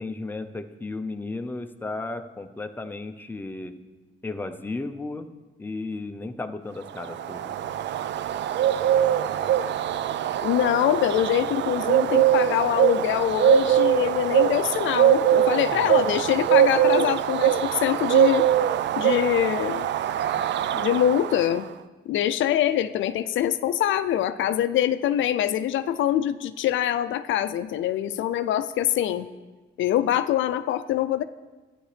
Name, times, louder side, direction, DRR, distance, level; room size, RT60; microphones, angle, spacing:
voice 1, 0.0-3.7 4.2-5.3 5.6-7.5 15.6-16.5, left 3 dB, 10° left, 6 dB, 0.7 m, -34 dB
Bird, 6.9-21.6, right 10 dB, 65° right, 0.5 m, -22 dB
voice 2, 10.4-18.5 19.0-19.9 20.7-21.7 22.1-29.3 29.8-31.2, left 11 dB, 75° left, 11 dB, 0.5 m, -24 dB
13.5 x 9.5 x 3.4 m, 1.3 s
cardioid pair, 90°, 20 cm